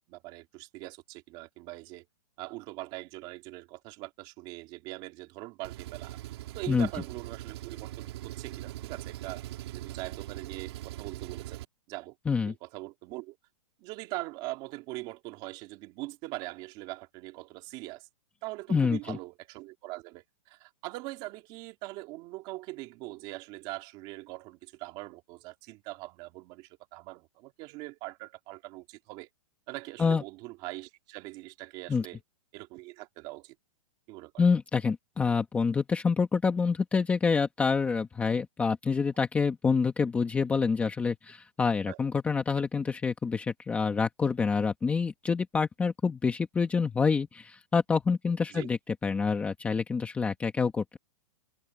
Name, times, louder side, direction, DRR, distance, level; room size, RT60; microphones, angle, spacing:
voice 1, 0.1-2.0 2.4-6.2 6.5-9.4 9.7-11.6 11.9-12.2 12.4-13.4 13.8-18.1 18.4-29.3 29.7-32.2 32.5-33.5 34.1-34.5 41.9-42.0 48.5-48.7, right 21 dB, 25° right, 2.5 m, -42 dB
Engine, 5.6-11.6, right 15 dB, 45° right, 3.0 m, -41 dB
voice 2, 18.7-19.2 30.0-30.2 31.9-32.1 34.4-51.0, left 5 dB, 5° left, 1.3 m, -27 dB
hypercardioid pair, 170°, 18 cm